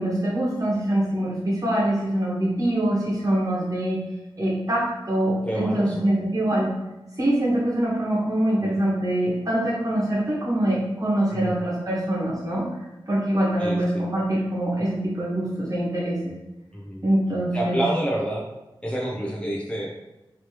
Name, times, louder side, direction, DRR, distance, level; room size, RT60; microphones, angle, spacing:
voice 1, 0.0-4.1 4.4-6.7 7.2-12.7 13.1-16.3 17.0-17.8, right 1 dB, 40° right, -5 dB, 1.3 m, -24 dB
voice 2, 5.5-6.1 8.6-8.8 11.4-11.5 13.6-14.0 16.7-17.0 17.5-18.5 18.8-19.9, right 1 dB, 10° left, -4 dB, 0.6 m, -28 dB
3.1 x 3.0 x 2.9 m, 0.99 s
wide cardioid pair, 65°, 9 cm